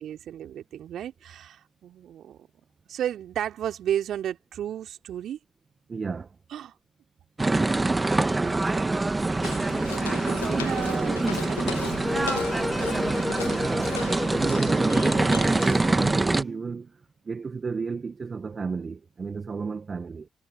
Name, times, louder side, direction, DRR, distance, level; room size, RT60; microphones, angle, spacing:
voice 1, 0.0-2.5 2.9-5.4 6.5-6.7 8.8-9.0 9.6-12.8, right 10 dB, 65° right, 3.3 m, -34 dB
voice 2, 5.9-6.3 13.4-20.3, right 5 dB, 40° right, 1.6 m, -33 dB
sound 1, 7.4-16.4, right 2 dB, 25° right, 2.0 m, -25 dB
Walk footsteps, 9.4-16.1, left 11 dB, 90° left, 1.5 m, -39 dB
sound 2, 12.0-16.4, left 2 dB, 20° left, 1.5 m, -33 dB
hypercardioid pair, 40°, 0 cm